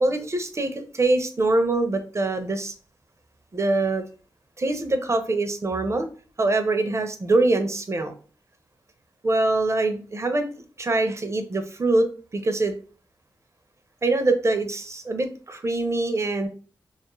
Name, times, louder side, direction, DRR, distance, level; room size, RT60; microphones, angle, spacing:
voice 1, 0.0-2.7 3.5-4.0 4.6-6.1 6.4-8.1 9.2-10.5 10.8-12.1 12.3-12.8 14.0-16.5, right 2 dB, 35° right, 7 dB, 0.6 m, -24 dB
2.3 x 2.0 x 3.0 m, 0.39 s
supercardioid pair, 40°, 8 cm